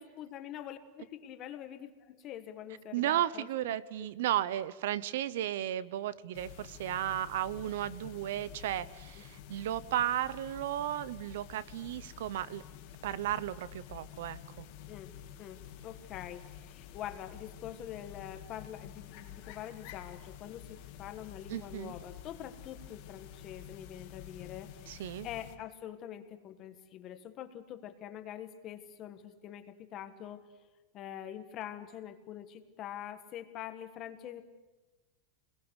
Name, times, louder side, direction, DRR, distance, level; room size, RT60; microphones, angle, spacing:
voice 1, 0.0-3.5 4.0-4.1 9.2-9.3 14.9-15.1 15.4-30.4 30.9-34.4, left 10 dB, 30° left, 9 dB, 1.5 m, -45 dB
voice 2, 2.9-12.6 13.0-14.7 21.5-21.9 24.9-25.3, right 12 dB, 70° right, 18 dB, 1.0 m, -34 dB
sound 1, 6.3-25.6, left 10 dB, 45° left, 2.5 m, -50 dB
27.5 x 21.5 x 8.2 m, 1.1 s
supercardioid pair, 175°, 0 cm